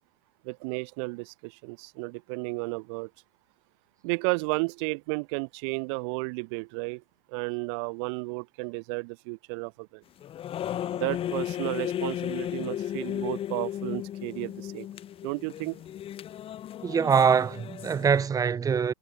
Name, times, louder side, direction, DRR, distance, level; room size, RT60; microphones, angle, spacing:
voice 1, 0.4-3.1 4.0-7.0 7.3-10.0 10.9-14.9 15.2-15.8, right 34 dB, 50° right, 1.4 m, -33 dB
sound 1, 10.2-18.3, left 11 dB, 30° left, 4.5 m, -35 dB
voice 2, 16.8-18.9, right 6 dB, 20° right, 2.1 m, -23 dB
hypercardioid pair, 105°, 19 cm